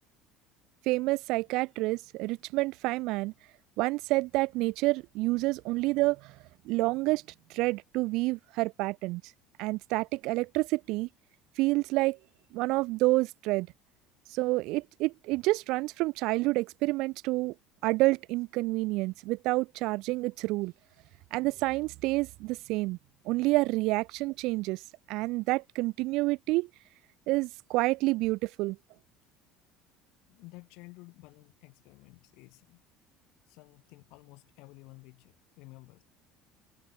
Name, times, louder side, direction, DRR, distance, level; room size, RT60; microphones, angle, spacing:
voice 1, 0.9-3.3 3.8-6.3 6.7-7.2 7.5-9.2 9.6-11.1 11.6-12.2 12.5-13.7 14.3-17.5 17.8-20.7 21.3-23.0 23.3-24.8 25.1-26.7 27.3-28.8, right 21 dB, 70° right, 0.4 m, -28 dB
voice 2, 30.3-32.8 33.5-36.0, left 25 dB, 75° left, 4.4 m, -52 dB
cardioid pair, 120°, 0 cm